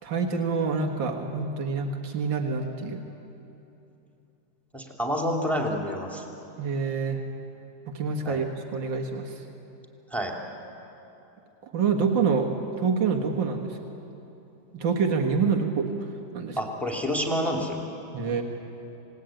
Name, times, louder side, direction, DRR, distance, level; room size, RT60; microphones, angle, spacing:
voice 1, 0.0-3.0 6.6-7.2 7.9-8.5 8.7-9.3 11.7-12.5 12.8-13.8 14.7-15.9 16.3-16.6 18.1-18.4, right 5 dB, 85° right, 1 dB, 2.4 m, -26 dB
voice 2, 4.7-6.2 8.2-8.4 10.1-10.3 16.6-17.8, equal, ahead, 0 dB, 2.9 m, -28 dB
27.5 x 19.0 x 9.1 m, 3.0 s
omnidirectional pair, 2.0 m